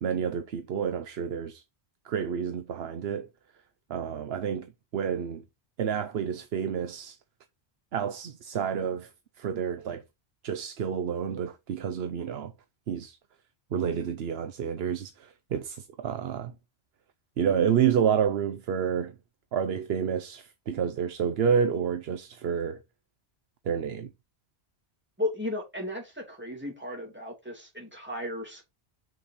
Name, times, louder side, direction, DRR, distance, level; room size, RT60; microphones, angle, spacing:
voice 1, 0.0-1.6 2.0-3.3 3.9-5.4 5.8-7.2 7.9-9.1 9.4-10.0 10.4-12.5 12.9-13.2 13.7-16.5 17.4-19.1 19.5-22.8 23.7-24.1, right 7 dB, 70° right, 0.9 m, -29 dB
voice 2, 25.2-28.6, left 1 dB, 10° right, 2.9 m, -35 dB
6.6 x 6.3 x 4.2 m
omnidirectional pair, 1.1 m